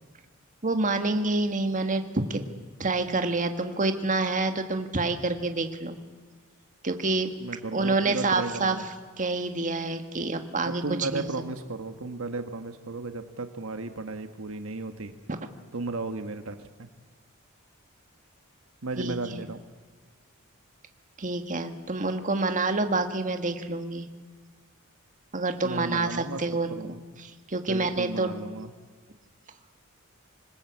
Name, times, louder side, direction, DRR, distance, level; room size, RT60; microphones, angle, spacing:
voice 1, 0.6-2.4 2.8-6.0 6.8-7.3 7.7-8.8 9.2-10.8 11.1-11.2 15.3-15.4 19.0-19.1 21.2-24.1 25.3-26.9 27.5-28.3, right 3 dB, 40° right, 7 dB, 1.7 m, -27 dB
voice 2, 7.4-8.9 10.6-15.1 15.7-16.9 18.8-19.6 25.6-26.4 26.7-27.1 27.7-28.7, right 3 dB, 70° right, 8 dB, 1.3 m, -34 dB
26.0 x 20.5 x 8.4 m, 1.4 s
head